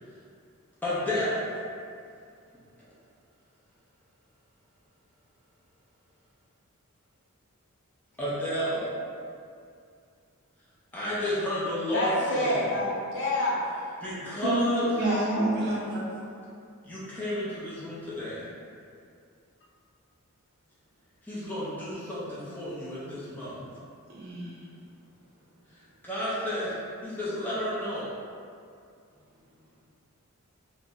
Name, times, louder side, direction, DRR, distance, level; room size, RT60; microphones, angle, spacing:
voice 1, 0.8-1.4 8.2-8.9 10.9-12.6 14.0-14.9 16.8-18.5 21.2-23.6 26.0-26.7 27.0-28.1, left 1 dB, 10° left, -10 dB, 0.5 m, -31 dB
voice 2, 11.9-14.0 15.0-15.5, left 1 dB, 55° left, -5 dB, 0.6 m, -28 dB
voice 3, 15.0-16.0 24.1-24.5, right 2 dB, 45° right, -6 dB, 0.7 m, -28 dB
2.6 x 2.0 x 3.4 m, 2.3 s
head